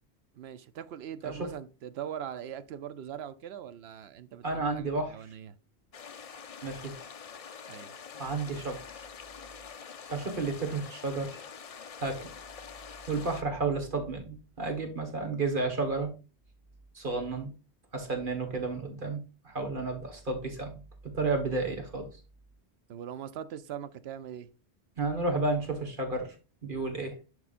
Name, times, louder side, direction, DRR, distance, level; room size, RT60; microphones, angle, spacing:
voice 1, 0.3-5.5 7.7-7.9 22.9-24.5, right 9 dB, 70° right, 0.8 m, -41 dB
voice 2, 4.4-5.3 6.6-6.9 8.2-9.1 10.0-11.4 12.0-12.3 13.1-16.1 16.9-17.5 17.9-22.1 25.0-26.3 26.6-27.2, right 3 dB, 50° right, 1.6 m, -32 dB
sound 1, 5.9-13.4, left 6 dB, 45° left, 0.5 m, -46 dB
11.0 x 4.7 x 2.5 m
omnidirectional pair, 1.1 m